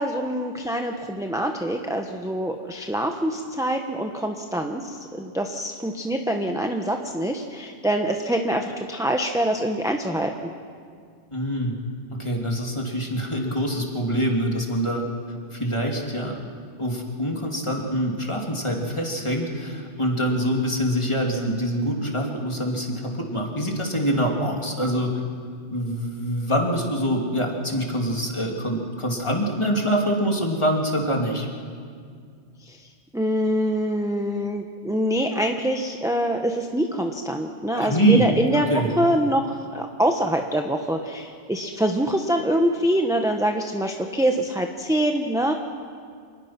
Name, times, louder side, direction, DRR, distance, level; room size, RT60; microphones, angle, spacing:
voice 1, 0.0-10.3 32.7-32.8 33.1-45.5, right 1 dB, 5° right, 3 dB, 1.0 m, -25 dB
voice 2, 11.3-11.7 12.1-15.0 15.5-16.3 16.8-25.2 25.7-31.5 37.7-38.2 38.5-38.9, equal, 25° left, 0 dB, 2.9 m, -25 dB
27.0 x 19.5 x 6.0 m, 2.1 s
omnidirectional pair, 1.2 m